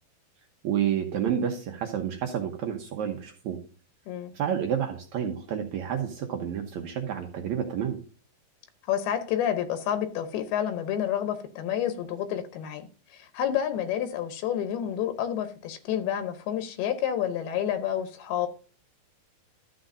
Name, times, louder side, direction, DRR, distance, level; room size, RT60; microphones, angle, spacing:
voice 1, 0.6-3.6 4.3-8.0, right 9 dB, 70° right, 1.8 m, -29 dB
voice 2, 8.9-18.5, left 10 dB, 85° left, 2.8 m, -29 dB
12.5 x 7.7 x 2.6 m
omnidirectional pair, 4.4 m